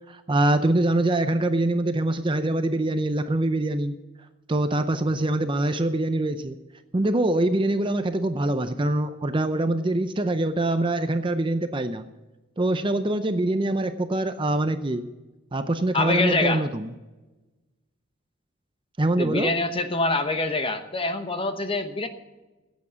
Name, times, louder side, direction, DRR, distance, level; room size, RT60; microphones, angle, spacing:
voice 1, 0.1-3.9 4.5-6.6 6.9-12.1 12.6-15.1 15.5-16.9 19.0-19.5, right 1 dB, 25° right, 9 dB, 0.5 m, -24 dB
voice 2, 15.9-16.6 19.2-22.1, left 2 dB, 25° left, 8 dB, 0.9 m, -25 dB
15.5 x 8.5 x 6.9 m, 1.1 s
head